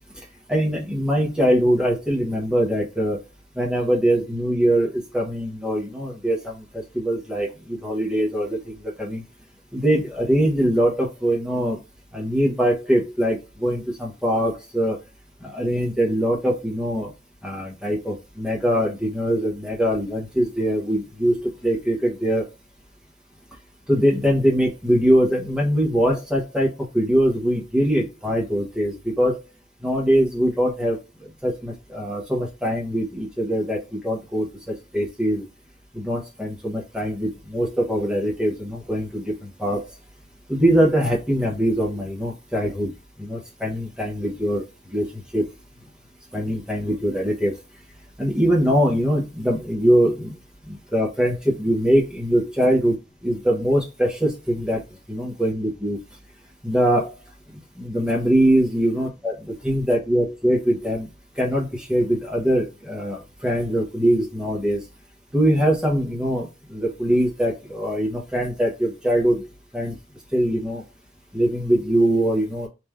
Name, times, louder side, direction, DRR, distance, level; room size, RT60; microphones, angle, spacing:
voice 1, 0.5-3.2 3.5-9.2 9.7-11.8 12.1-15.0 15.4-17.1 17.4-22.4 23.9-29.4 29.8-35.5 35.9-39.8 40.5-42.9 43.2-45.4 46.3-47.5 48.2-50.4 50.7-53.0 53.2-54.8 55.1-56.0 56.6-57.1 57.8-61.1 61.4-64.8 65.3-69.5 69.7-70.0 70.3-70.8 71.3-72.7, equal, 5° right, -2 dB, 1.2 m, -22 dB
3.2 x 3.0 x 3.6 m, 0.25 s
head